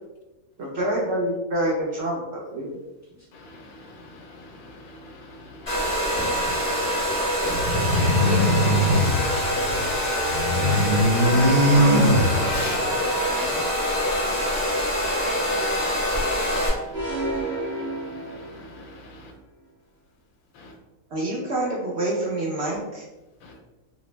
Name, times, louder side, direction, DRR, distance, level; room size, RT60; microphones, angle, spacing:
voice 1, 0.6-2.2 2.5-2.8 21.1-23.0, right 1 dB, 65° right, -3 dB, 0.7 m, -26 dB
voice 2, 3.3-7.3 14.0-19.3 20.5-20.8 23.4-23.6, left 1 dB, 85° left, 2 dB, 1.0 m, -45 dB
Domestic sounds home sounds, 5.7-16.7, equal, 30° left, 1.0 m, -25 dB
sound 1, 7.5-9.9 10.2-12.8, equal, 60° left, 0.4 m, -21 dB
voice 3, 8.0-10.3 11.2-13.6, equal, 15° right, -9 dB, 0.6 m, -36 dB
sound 2, 16.9-18.9, right 1 dB, 40° right, 1.0 m, -30 dB
2.5 x 2.0 x 3.0 m, 1.1 s
omnidirectional pair, 1.4 m